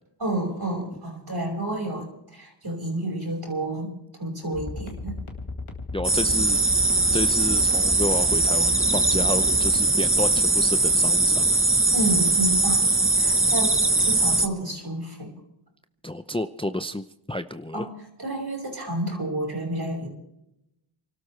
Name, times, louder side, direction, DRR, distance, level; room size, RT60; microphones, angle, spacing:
voice 1, 0.2-3.9 4.2-5.2 6.5-6.6 11.9-12.9 13.1-15.3 17.7-17.9 18.2-20.1, right 1 dB, 50° right, 0 dB, 6.0 m, -30 dB
sound 1, 4.5-9.8, left 3 dB, 90° left, 2.1 m, -35 dB
voice 2, 5.9-6.6 7.1-11.6 16.0-17.9, left 1 dB, 10° left, 10 dB, 0.6 m, -30 dB
sound 2, 6.0-14.5, right 2 dB, 25° right, 1.2 m, -21 dB
29.0 x 13.0 x 3.3 m, 0.85 s
wide cardioid pair, 50°, 48 cm